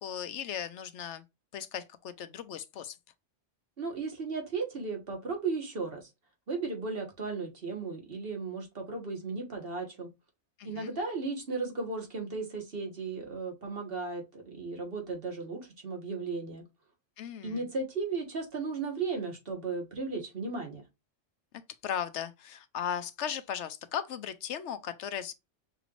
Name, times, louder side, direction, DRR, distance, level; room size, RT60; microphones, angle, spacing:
voice 1, 0.0-1.2 1.5-2.9 10.6-10.9 17.2-17.6 21.8-25.3, left 9 dB, 90° left, 1.0 m, -37 dB
voice 2, 3.8-6.1 6.5-10.1 10.6-16.6 17.4-20.8, right 4 dB, 55° right, 1.8 m, -35 dB
5.8 x 3.2 x 2.5 m
omnidirectional pair, 1.2 m